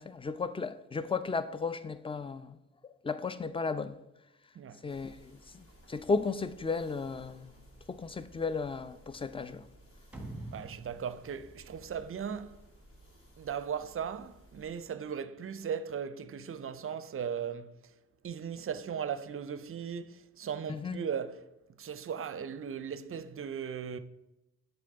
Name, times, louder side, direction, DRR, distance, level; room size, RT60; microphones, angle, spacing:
voice 1, 0.0-2.6 3.0-4.0 4.8-7.6 7.9-9.6 20.7-21.0, left 4 dB, 15° left, 0.4 m, -34 dB
sound 1, 4.9-14.9, equal, 40° left, 2.1 m, -58 dB
sound 2, 10.1-12.6, right 2 dB, 5° right, 1.2 m, -46 dB
voice 2, 10.5-12.6 13.4-17.8 18.2-21.5 21.8-24.0, right 7 dB, 40° right, 0.5 m, -37 dB
7.6 x 3.5 x 3.9 m
supercardioid pair, 45°, 33 cm